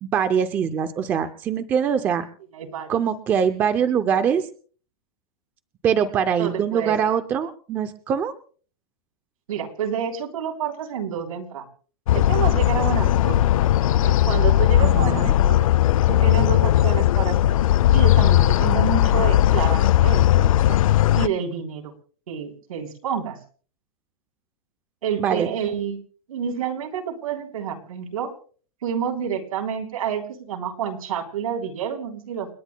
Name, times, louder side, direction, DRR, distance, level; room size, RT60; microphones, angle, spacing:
voice 1, 0.0-2.2 2.9-4.5 5.8-8.3 14.8-15.3 25.2-25.5, right 7 dB, 10° right, 10 dB, 0.5 m, -23 dB
voice 2, 2.5-3.0 6.4-7.0 9.5-11.7 12.1-13.4 13.9-15.7 16.1-17.7 17.9-20.8 21.1-21.9 22.3-23.4 25.0-26.0 26.3-28.3 28.8-32.5, right 7 dB, 80° right, 2 dB, 3.5 m, -29 dB
sound 1, 12.1-21.3, left 13 dB, 70° left, 0.5 m, -18 dB
29.5 x 10.0 x 2.2 m, 0.42 s
supercardioid pair, 180°, 18 cm